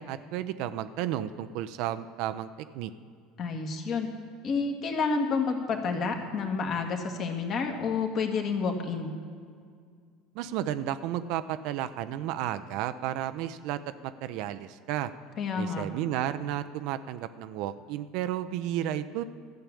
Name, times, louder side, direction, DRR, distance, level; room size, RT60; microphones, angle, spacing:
voice 1, 0.0-2.5 2.7-2.9 10.3-15.1 15.5-19.2, right 11 dB, 60° right, 11 dB, 0.5 m, -32 dB
voice 2, 3.4-4.1 4.4-9.1 15.4-15.9, left 4 dB, 45° left, 4 dB, 1.7 m, -29 dB
13.0 x 6.9 x 8.4 m, 2.1 s
figure-of-eight pair, 70°, 0 cm